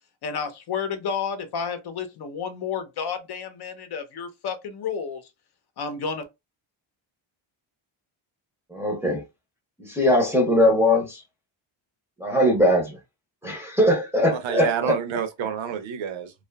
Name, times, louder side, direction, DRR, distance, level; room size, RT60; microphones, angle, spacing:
voice 1, 0.2-5.3 5.8-6.2, left 6 dB, 55° left, 0.7 m, -31 dB
voice 2, 8.7-9.2 9.8-11.2 12.2-13.0 13.4-15.0, left 1 dB, 5° right, 0.7 m, -21 dB
voice 3, 14.3-16.3, right 7 dB, 70° right, 0.7 m, -28 dB
2.6 x 2.4 x 2.2 m
cardioid pair, 120°, 48 cm